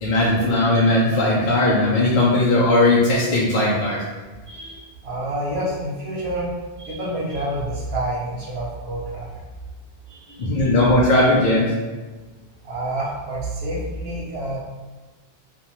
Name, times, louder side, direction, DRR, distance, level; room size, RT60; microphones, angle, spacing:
voice 1, 0.0-4.0 10.4-11.7, left 1 dB, 55° left, -6 dB, 0.6 m, -18 dB
voice 2, 4.5-6.5 6.8-9.3 10.1-10.7 12.6-14.6, right 1 dB, 85° right, -3 dB, 1.0 m, -28 dB
2.4 x 2.2 x 2.9 m, 1.2 s
omnidirectional pair, 1.0 m